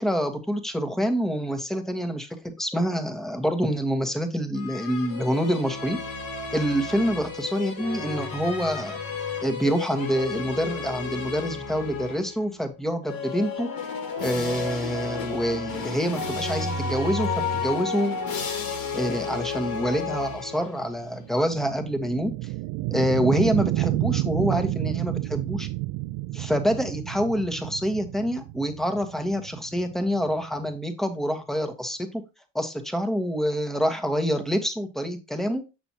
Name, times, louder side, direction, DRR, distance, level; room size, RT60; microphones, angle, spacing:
voice 1, 0.0-6.0 6.5-9.0 9.4-13.7 14.2-18.2 18.9-22.3 22.9-25.7 26.3-32.2 32.5-35.6, equal, ahead, 6 dB, 1.3 m, -26 dB
sound 1, 4.5-12.4 13.0-20.9, left 4 dB, 55° left, 1.9 m, -32 dB
sound 2, 20.0-30.7, right 18 dB, 75° right, 0.5 m, -30 dB
6.8 x 6.1 x 2.9 m, 0.26 s
supercardioid pair, 70°, 40 cm